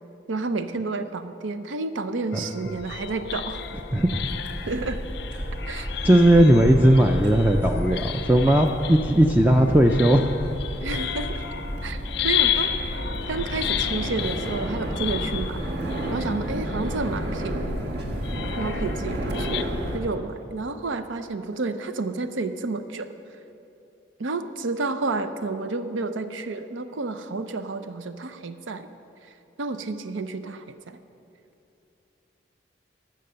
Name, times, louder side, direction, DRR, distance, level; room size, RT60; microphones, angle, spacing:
voice 1, 0.3-3.6 4.7-5.0 5.7-5.9 10.8-11.4 11.8-12.0 12.2-15.6 16.1-17.8 18.6-19.7 19.9-23.1 24.2-28.9 29.6-31.0, right 3 dB, 85° right, 10 dB, 0.6 m, -30 dB
sound 1, 2.3-17.2 18.2-19.6, left 11 dB, 60° left, 0.4 m, -33 dB
sound 2, 2.7-20.0, equal, 60° right, 1.3 m, -31 dB
voice 2, 3.9-4.4 6.0-10.3, right 1 dB, 10° right, 3 dB, 0.3 m, -18 dB
14.0 x 6.7 x 6.7 m, 2.8 s
head